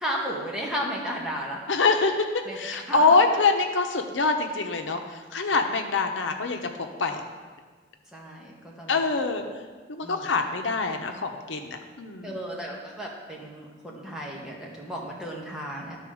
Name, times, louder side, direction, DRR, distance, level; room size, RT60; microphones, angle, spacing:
voice 1, 0.0-1.6 2.4-2.6 2.9-3.1 5.5-5.7 8.1-9.3 10.0-10.3 12.2-16.0, equal, 5° right, -3 dB, 1.3 m, -34 dB
voice 2, 1.7-2.1 2.6-5.0 5.3-6.6 7.0-7.2 8.9-9.4 9.9-12.4, left 4 dB, 90° left, 5 dB, 0.9 m, -24 dB
11.0 x 4.1 x 6.2 m, 1.4 s
head